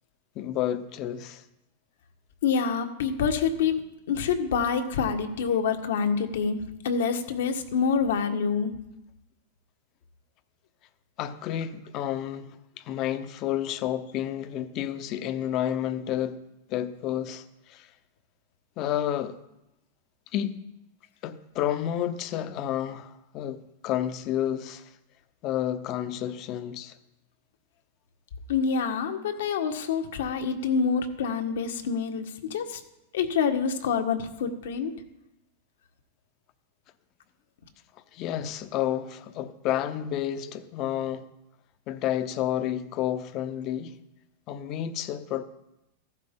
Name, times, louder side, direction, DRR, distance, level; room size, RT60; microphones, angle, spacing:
voice 1, 0.3-1.4 11.2-12.5 12.8-16.4 16.7-17.9 18.8-19.4 20.3-20.6 21.2-24.9 25.4-26.9 38.1-41.2 41.9-43.9 44.5-45.4, left 11 dB, 45° left, 1.0 m, -30 dB
voice 2, 2.4-3.8 4.1-6.6 6.8-8.7 28.5-32.6 33.1-34.9, left 6 dB, 75° left, 1.6 m, -26 dB
14.5 x 12.0 x 3.9 m
hypercardioid pair, 110°, 0 cm